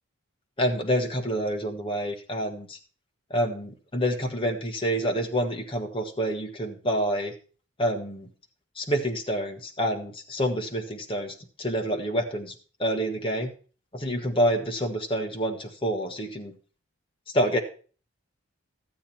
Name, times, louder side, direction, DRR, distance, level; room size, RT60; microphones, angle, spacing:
voice 1, 0.6-2.8 3.3-7.3 7.8-8.3 8.8-12.5 12.8-13.5 13.9-16.5 17.3-17.6, equal, 25° left, 3 dB, 1.4 m, -27 dB
12.5 x 8.5 x 4.4 m, 0.39 s
head